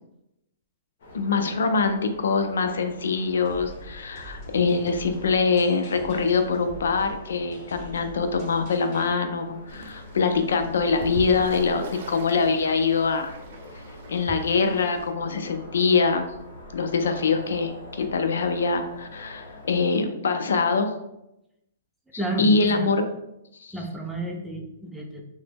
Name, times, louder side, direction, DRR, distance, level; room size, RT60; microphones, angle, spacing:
sound 1, 1.0-20.0, left 1 dB, 60° left, 0.8 m, -44 dB
voice 1, 1.1-13.3 14.1-16.3 16.7-20.9 22.4-23.0 23.6-23.7, left 4 dB, 85° left, 7 dB, 0.4 m, -24 dB
sound 2, 3.5-9.1, right 1 dB, 30° left, 1.2 m, -45 dB
Fowl / Bird, 9.7-15.1, right 2 dB, 60° right, 0.7 m, -41 dB
voice 2, 22.2-23.0 23.7-25.2, right 2 dB, ahead, -1 dB, 0.4 m, -31 dB
2.9 x 2.1 x 3.4 m, 0.87 s
hypercardioid pair, 155°, 0 cm